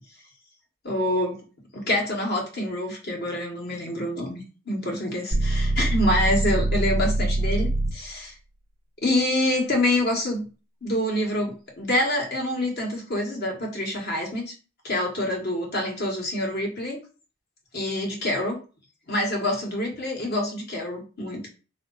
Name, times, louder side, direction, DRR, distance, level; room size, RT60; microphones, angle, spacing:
voice 1, 0.8-1.4 1.7-8.3 9.0-10.4 10.8-14.5 14.8-17.0 17.7-18.6 19.1-21.4, left 1 dB, 50° left, 0 dB, 1.6 m, -26 dB
sound 1, 5.3-8.1, right 1 dB, 20° right, 0.6 m, -24 dB
4.0 x 3.0 x 4.0 m, 0.34 s
head